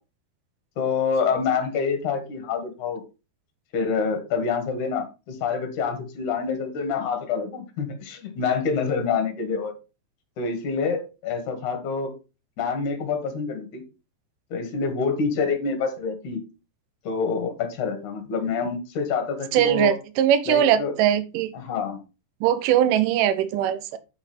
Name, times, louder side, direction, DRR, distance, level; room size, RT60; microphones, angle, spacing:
voice 1, 0.8-3.0 3.7-9.7 10.4-12.1 12.6-13.8 14.5-16.4 17.0-19.9 20.5-20.9 21.5-22.0, left 5 dB, 55° left, 6 dB, 3.1 m, -27 dB
voice 2, 19.5-21.5 22.4-24.0, right 10 dB, 70° right, 12 dB, 2.2 m, -21 dB
8.6 x 5.7 x 4.3 m, 0.30 s
omnidirectional pair, 4.4 m